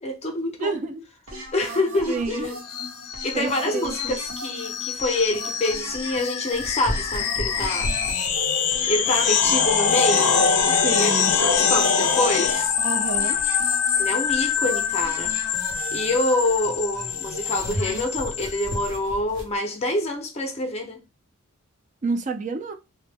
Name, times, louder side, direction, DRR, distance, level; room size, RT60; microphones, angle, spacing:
voice 1, 0.0-0.8 1.5-2.6 3.2-7.9 8.9-10.4 10.7-12.7 14.0-15.4 15.9-21.0, left 2 dB, 30° left, 0.5 m, -26 dB
voice 2, 0.6-1.0 1.3-1.4 2.1-2.5 3.3-4.2 10.8-11.3 12.8-13.4 22.0-22.7, right 4 dB, 35° right, 0.3 m, -29 dB
sound 1, 1.3-18.0, right 1 dB, 75° right, 1.0 m, -39 dB
sound 2, 2.7-18.9, left 6 dB, 85° left, 0.4 m, -24 dB
sound 3, 6.5-19.5, equal, 55° right, 0.8 m, -36 dB
2.1 x 2.1 x 3.3 m
head